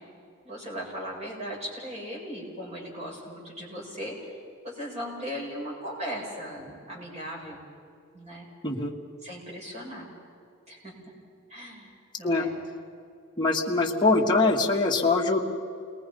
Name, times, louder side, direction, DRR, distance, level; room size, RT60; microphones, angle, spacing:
voice 1, 0.4-4.3 4.6-7.6 8.1-8.5 9.2-10.1 10.7-10.9 11.5-11.9 12.2-12.5, equal, 35° right, -4 dB, 7.6 m, -37 dB
voice 2, 13.4-15.4, left 3 dB, 20° left, -1 dB, 2.2 m, -23 dB
29.0 x 22.0 x 5.6 m, 2.4 s
head